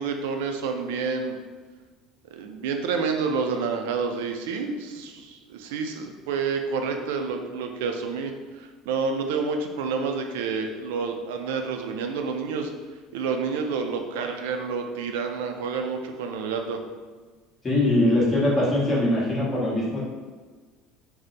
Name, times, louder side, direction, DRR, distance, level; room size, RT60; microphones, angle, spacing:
voice 1, 0.0-1.4 2.3-12.7 13.1-16.8, right 5 dB, 85° right, 4 dB, 0.3 m, -29 dB
voice 2, 17.6-20.0, left 1 dB, 25° left, -6 dB, 1.1 m, -22 dB
2.5 x 2.0 x 3.9 m, 1.4 s
supercardioid pair, 105°, 0 cm